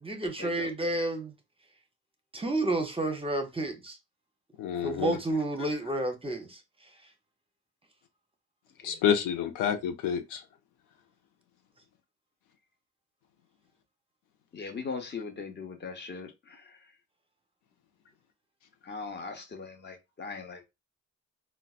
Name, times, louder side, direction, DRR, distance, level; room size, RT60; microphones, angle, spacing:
voice 1, 0.0-1.3 2.3-4.0 4.8-6.6, right 2 dB, 20° right, 0.6 m, -30 dB
voice 2, 4.6-5.2 8.8-10.4, left 8 dB, 85° left, 0.6 m, -28 dB
voice 3, 14.5-16.3 18.9-20.6, left 4 dB, 35° left, 0.8 m, -39 dB
3.9 x 2.2 x 2.3 m
cardioid pair, 90°, 30 cm